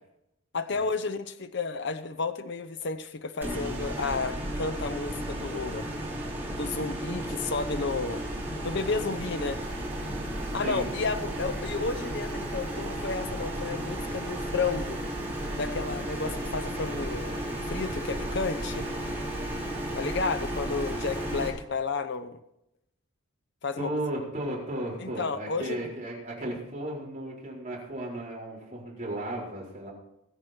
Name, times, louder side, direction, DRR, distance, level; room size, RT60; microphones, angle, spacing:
voice 1, 0.5-5.9 6.6-8.2 8.6-9.6 10.5-15.0 15.6-17.3 17.7-18.9 19.9-22.4 23.6-23.9 25.0-25.9, left 4 dB, 50° left, 10 dB, 0.7 m, -32 dB
sound 1, 3.4-21.5, right 1 dB, 10° right, 3.8 m, -34 dB
voice 2, 10.4-10.9 23.8-29.9, right 1 dB, 35° right, -5 dB, 4.4 m, -35 dB
21.0 x 8.2 x 4.4 m, 0.84 s
head